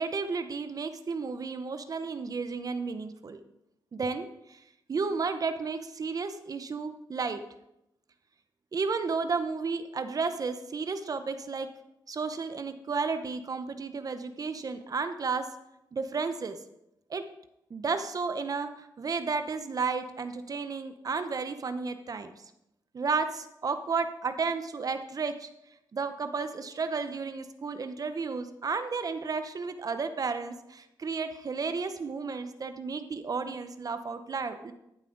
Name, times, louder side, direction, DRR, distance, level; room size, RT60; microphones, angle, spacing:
voice 1, 0.0-3.4 3.9-4.6 4.9-7.4 8.7-11.7 12.1-15.5 15.9-16.6 17.1-17.2 17.7-22.4 22.9-25.5 25.9-34.7, right 4 dB, 50° right, 9 dB, 0.8 m, -32 dB
13.0 x 7.4 x 3.9 m, 0.83 s
cardioid pair, 70°, 8 cm